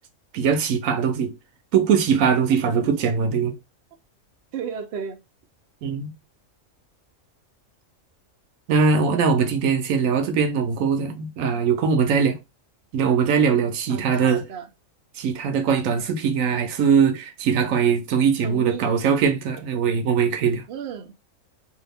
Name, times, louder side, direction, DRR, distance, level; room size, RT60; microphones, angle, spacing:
voice 1, 0.3-1.4 1.7-3.6 5.8-6.1 8.7-12.4 12.9-14.4 15.2-20.6, right 6 dB, 80° right, 1.0 m, -21 dB
voice 2, 2.5-3.1 4.5-5.2 13.9-14.7 18.4-19.0 20.7-21.1, right 7 dB, 60° right, 0.7 m, -34 dB
2.8 x 2.4 x 3.4 m
omnidirectional pair, 1.4 m